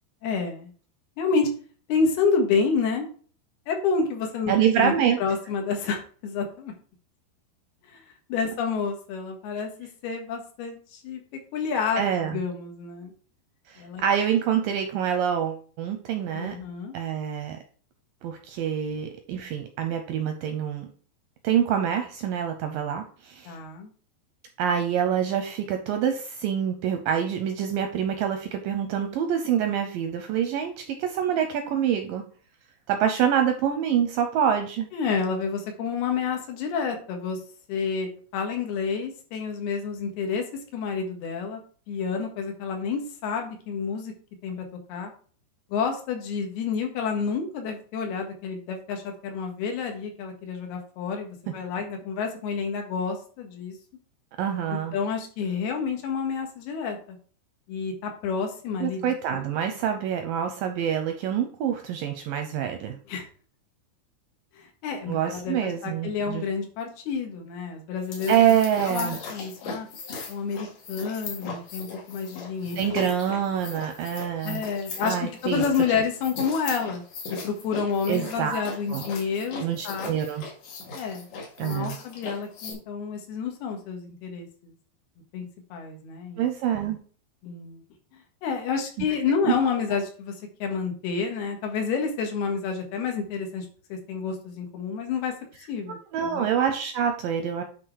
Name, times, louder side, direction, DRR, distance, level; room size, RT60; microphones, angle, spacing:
voice 1, 0.2-0.7 1.2-1.5 1.9-3.1 3.7-4.9 5.2-6.7 7.9-8.0 8.3-11.2 11.5-13.1 13.8-14.0 16.3-16.9 23.5-23.9 34.9-37.4 37.7-40.4 40.7-41.6 41.9-44.1 44.4-45.1 45.7-53.8 54.7-57.2 57.7-59.0 63.1-63.2 64.6-68.4 68.8-69.9 70.3-73.1 74.4-77.0 77.4-80.1 80.9-81.3 81.6-84.5 85.3-86.4 87.4-87.8 88.4-90.3 90.6-95.3 95.7-96.5, left 5 dB, 75° left, 3 dB, 3.3 m, -29 dB
voice 2, 4.5-5.2 12.0-12.4 13.7-16.6 16.9-17.6 18.2-20.9 21.4-23.5 24.6-32.3 32.9-34.9 54.4-55.0 58.8-63.0 65.1-66.4 68.3-69.2 72.8-74.6 75.0-75.7 78.1-78.6 78.9-79.0 79.6-80.5 81.6-82.0 86.4-87.0 89.5-89.6 95.9-97.6, right 9 dB, 80° right, 6 dB, 2.1 m, -26 dB
sound 1, 68.0-82.7, left 4 dB, 60° left, 3.3 m, -39 dB
9.6 x 4.2 x 4.7 m, 0.42 s
omnidirectional pair, 4.7 m